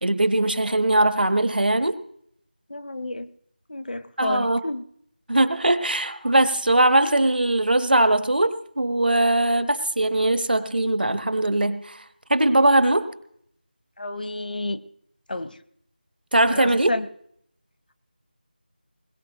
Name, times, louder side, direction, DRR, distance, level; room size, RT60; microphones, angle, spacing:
voice 1, 0.0-2.0 4.2-4.6 5.3-12.0 12.3-13.1 16.3-16.9, right 1 dB, 75° right, 12 dB, 1.3 m, -20 dB
voice 2, 2.7-3.3 3.7-4.8 14.0-14.8 15.3-15.6 16.5-17.1, left 2 dB, 65° left, 13 dB, 1.0 m, -30 dB
21.0 x 19.5 x 3.0 m, 0.67 s
figure-of-eight pair, 170°, 5 cm